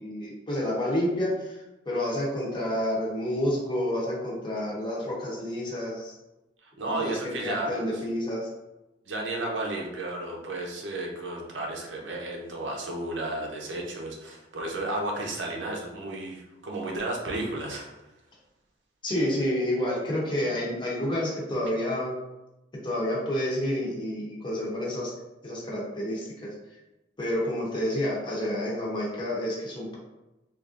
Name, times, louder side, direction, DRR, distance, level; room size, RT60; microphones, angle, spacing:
voice 1, 0.0-6.1 6.9-7.1 7.4-8.5 19.0-22.1 22.8-25.1 25.4-26.5 27.2-30.0, left 1 dB, 25° left, -4 dB, 0.7 m, -29 dB
voice 2, 6.6-8.0 9.1-17.9, right 2 dB, 85° right, 0 dB, 0.6 m, -33 dB
3.3 x 2.4 x 2.5 m, 0.99 s
head